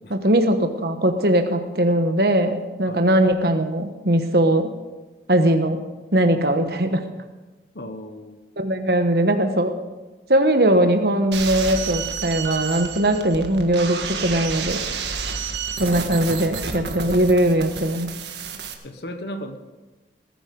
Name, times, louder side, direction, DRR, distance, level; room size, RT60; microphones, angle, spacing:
voice 1, 0.1-4.7 5.3-5.8 6.1-7.0 8.6-9.7 10.3-14.8 15.8-18.1, right 1 dB, 60° right, 6 dB, 1.3 m, -20 dB
voice 2, 7.7-8.4 18.8-19.6, equal, 75° left, 7 dB, 1.2 m, -35 dB
sound 1, 11.3-18.7, right 5 dB, 80° right, 1.6 m, -30 dB
19.0 x 10.5 x 5.4 m, 1.2 s
head